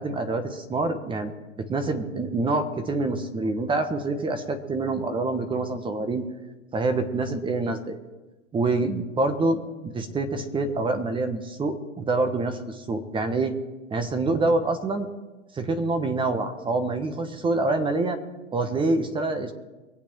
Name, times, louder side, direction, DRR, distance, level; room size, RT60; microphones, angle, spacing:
voice 1, 0.0-1.3 1.6-6.2 6.7-8.0 8.5-13.5 13.9-15.1 15.5-18.2 18.5-19.5, right 2 dB, 15° right, 8 dB, 1.2 m, -26 dB
24.0 x 8.5 x 4.6 m, 1.1 s
hypercardioid pair, 120°, 38 cm